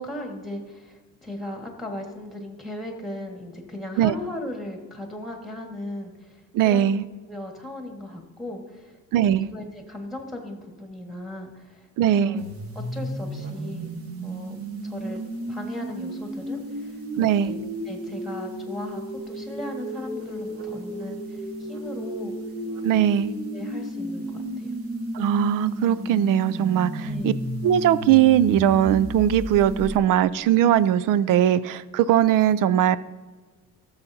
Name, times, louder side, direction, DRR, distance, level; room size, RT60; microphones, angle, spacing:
voice 1, 0.0-7.0 7.3-11.9 12.1-13.9 14.2-15.2 15.5-17.6 17.8-22.4 22.9-24.8 27.0-27.4, left 1 dB, ahead, 2 dB, 1.6 m, -37 dB
voice 2, 6.5-7.0 9.1-9.5 12.0-12.4 17.2-17.5 22.8-23.3 25.1-27.3 27.6-33.0, right 11 dB, 80° right, 17 dB, 0.5 m, -20 dB
sound 1, 12.4-30.0, right 1 dB, 45° right, 1.4 m, -33 dB
15.5 x 7.2 x 2.7 m, 1.3 s
cardioid pair, 135°, 32 cm